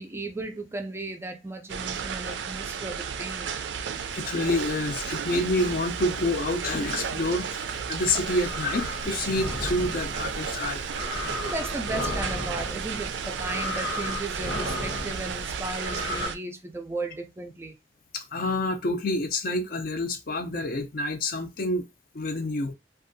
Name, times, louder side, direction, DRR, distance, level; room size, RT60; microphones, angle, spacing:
voice 1, 0.0-3.7 11.4-17.8, right 2 dB, 15° right, 0.3 m, -35 dB
sound 1, 1.7-16.4, right 6 dB, 90° right, 0.3 m, -33 dB
voice 2, 4.1-10.9 18.1-21.8 22.1-22.7, left 2 dB, 55° left, 0.5 m, -28 dB
sound 2, 7.9-16.3, left 1 dB, 85° left, 1.0 m, -34 dB
2.6 x 2.3 x 2.5 m
head